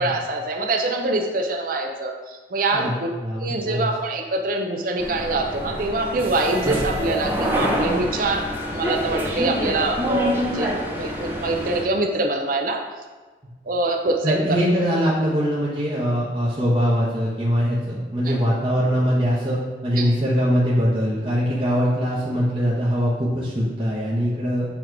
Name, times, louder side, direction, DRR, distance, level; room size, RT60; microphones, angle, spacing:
voice 1, 0.0-3.1 3.4-12.8 13.7-14.6 18.2-18.4 20.0-20.1, right 2 dB, 50° right, 3 dB, 0.6 m, -24 dB
voice 2, 3.2-3.9 14.2-24.7, equal, 30° right, -8 dB, 1.1 m, -22 dB
sound 1, 5.0-11.8, equal, 10° right, 0.7 m, -26 dB
7.2 x 3.0 x 4.7 m, 1.3 s
head